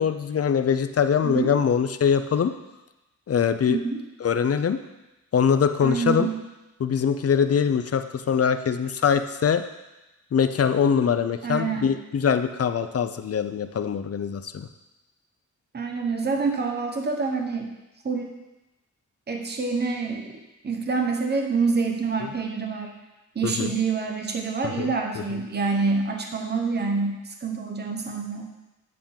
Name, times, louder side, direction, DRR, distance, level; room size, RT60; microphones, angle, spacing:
voice 1, 0.0-2.5 3.3-3.8 4.2-4.8 5.3-6.3 6.8-9.6 10.3-14.7 23.4-23.7 24.8-24.9, left 7 dB, 50° left, 10 dB, 0.5 m, -23 dB
voice 2, 3.7-4.0 5.8-6.3 11.4-11.9 15.7-17.7 18.0-18.4 19.3-22.9 23.3-28.5, right 4 dB, 35° right, 3 dB, 0.9 m, -27 dB
9.6 x 3.6 x 7.1 m, 1.0 s
wide cardioid pair, 135°, 31 cm